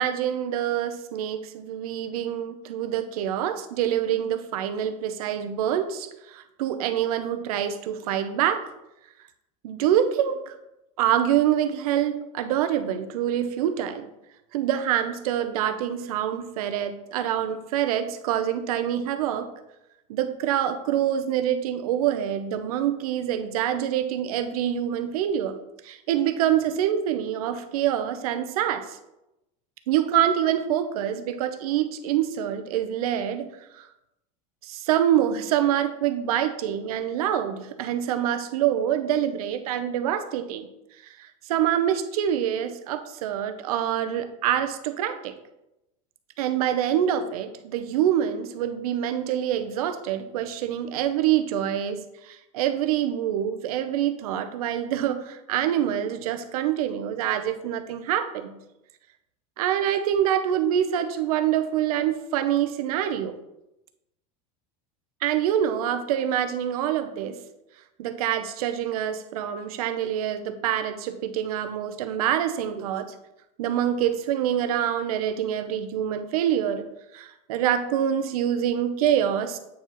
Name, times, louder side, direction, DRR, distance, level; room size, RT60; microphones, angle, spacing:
voice 1, 0.0-8.6 9.6-10.5 11.0-14.1 14.5-19.5 20.1-25.6 25.8-29.0 29.9-33.5 33.7-33.9 34.6-40.7 41.0-45.4 46.4-58.6 59.6-63.4 65.2-67.4 68.0-73.1 73.6-76.9 77.1-79.6, right 10 dB, 85° right, 9 dB, 0.7 m, -26 dB
8.3 x 4.7 x 3.0 m, 0.91 s
supercardioid pair, 170°, 18 cm